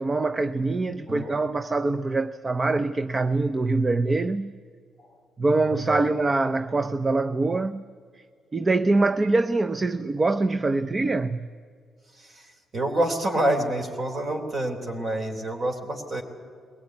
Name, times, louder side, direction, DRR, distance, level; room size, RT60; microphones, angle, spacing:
voice 1, 0.0-4.5 5.4-7.8 8.5-11.5, right 3 dB, 25° right, 0.6 m, -24 dB
voice 2, 12.7-16.2, right 1 dB, 45° right, 3.7 m, -27 dB
21.5 x 17.5 x 9.7 m
cardioid pair, 90°, 0 cm